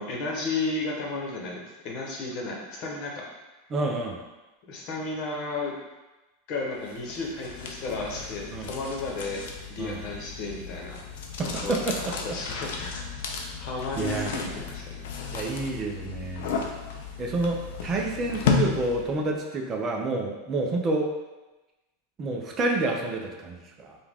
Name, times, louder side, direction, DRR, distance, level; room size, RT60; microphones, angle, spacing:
voice 1, 0.0-3.3 4.7-5.7 6.5-9.4 9.7-11.0 11.4-11.7 12.1-13.1 13.4-15.1, left 3 dB, 45° left, -2 dB, 1.1 m, -33 dB
voice 2, 3.7-4.2 8.5-8.7 9.8-10.0 11.4-12.2 14.0-14.3 15.3-16.5 17.2-21.1 22.2-24.0, right 2 dB, 25° right, 1 dB, 0.6 m, -29 dB
sound 1, 6.9-19.2, left 5 dB, 75° left, 0.6 m, -33 dB
5.1 x 2.4 x 3.6 m, 1.1 s
supercardioid pair, 145°, 0 cm